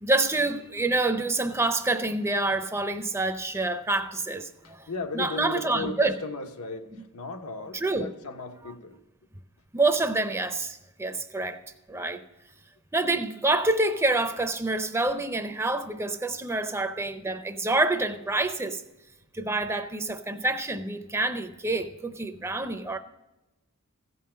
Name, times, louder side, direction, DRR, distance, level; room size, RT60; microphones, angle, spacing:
voice 1, 0.0-4.9 5.1-6.1 7.7-8.1 9.7-11.6 11.9-12.2 12.9-18.8 19.3-23.0, right 2 dB, 10° right, 0.5 m, -27 dB
voice 2, 4.6-9.0, left 3 dB, 85° left, 1.0 m, -36 dB
15.5 x 5.6 x 7.4 m
head